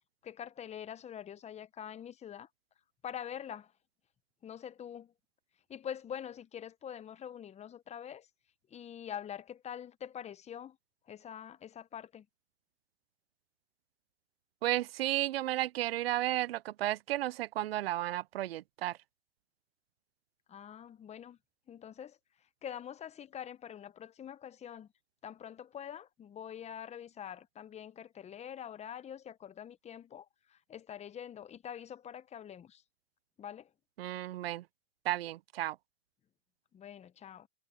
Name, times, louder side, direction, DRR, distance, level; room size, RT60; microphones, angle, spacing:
voice 1, 0.2-2.5 3.0-3.7 4.4-5.1 5.7-8.3 8.7-10.8 11.0-12.3 20.5-21.4 21.7-24.9 25.2-32.8 33.4-33.7 36.7-37.5, left 9 dB, 20° left, 1.0 m, -45 dB
voice 2, 14.6-19.0 34.0-34.6 35.0-35.8, right 14 dB, 90° right, 0.5 m, -33 dB
hypercardioid pair, 115°, 29 cm